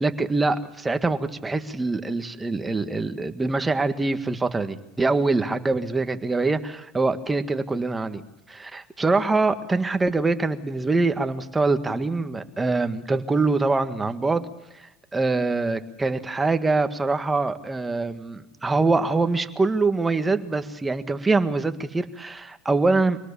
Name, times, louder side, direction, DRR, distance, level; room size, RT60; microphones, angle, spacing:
voice 1, 0.0-8.2 8.5-14.4 14.7-23.2, right 3 dB, 10° right, 8 dB, 1.7 m, -24 dB
25.5 x 19.0 x 7.0 m, 0.91 s
supercardioid pair, 130°, 0 cm